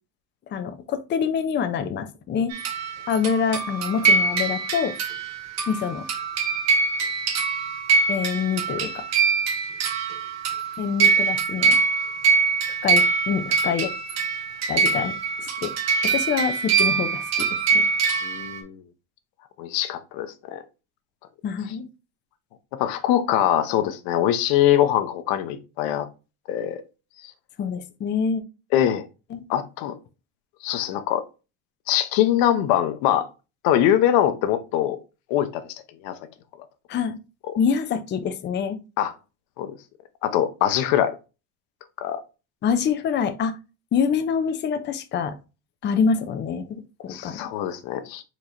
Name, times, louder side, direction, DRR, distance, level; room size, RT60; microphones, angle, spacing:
voice 1, 0.5-2.5 3.1-4.9 5.7-6.0 8.1-8.9 10.8-11.8 12.8-13.9 14.7-15.1 15.4-15.7 16.0-17.5 17.7-17.8 21.4-21.9 27.6-28.4 29.3-29.4 36.9-37.2 37.6-38.8 42.6-43.6 43.9-45.3 45.8-47.4, left 6 dB, 30° left, 0.6 m, -25 dB
sound 1, 2.5-18.6, right 5 dB, 45° right, 1.1 m, -23 dB
voice 2, 18.2-18.8 19.6-20.6 22.7-26.1 26.5-26.8 27.2-27.3 28.7-29.1 29.5-30.0 30.6-31.3 31.9-33.3 33.6-35.0 35.3-35.6 36.0-36.2 37.5-37.6 39.0-39.1 39.6-39.8 40.2-41.1 42.0-42.2 47.1-48.2, left 11 dB, 75° left, 0.8 m, -23 dB
4.6 x 4.2 x 2.6 m
cardioid pair, 135°, 36 cm